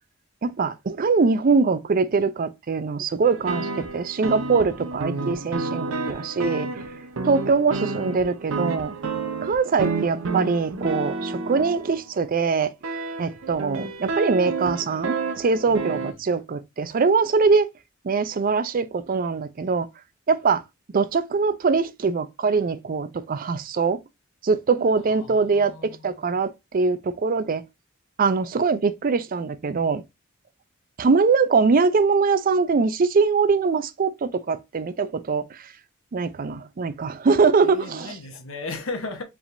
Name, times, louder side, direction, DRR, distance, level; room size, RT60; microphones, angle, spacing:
voice 1, 0.4-6.7 7.2-9.0 9.4-12.7 13.2-17.7 18.0-19.9 20.3-20.6 20.9-24.0 24.4-27.6 28.2-30.0 31.0-35.7 36.1-38.1, right 4 dB, 45° right, 0.4 m, -22 dB
sound 1, 3.2-12.0 12.8-16.1, right 3 dB, 90° right, 0.7 m, -30 dB
voice 2, 5.1-5.8 15.9-16.2 24.9-26.4 37.6-39.2, left 3 dB, 75° left, 1.0 m, -37 dB
4.9 x 3.5 x 2.5 m
head